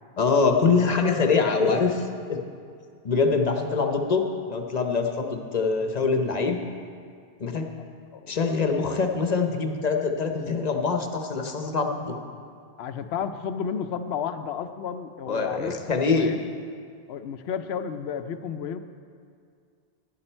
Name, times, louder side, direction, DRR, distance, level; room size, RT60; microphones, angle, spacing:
voice 1, 0.2-1.9 2.3-2.4 3.0-6.6 7.4-7.6 8.3-12.2 15.3-16.3, left 4 dB, 45° left, 4 dB, 0.8 m, -24 dB
voice 2, 12.8-15.8 16.1-16.4 17.1-18.8, left 7 dB, 90° left, 10 dB, 0.9 m, -32 dB
11.5 x 11.0 x 4.4 m, 2.3 s
omnidirectional pair, 1.0 m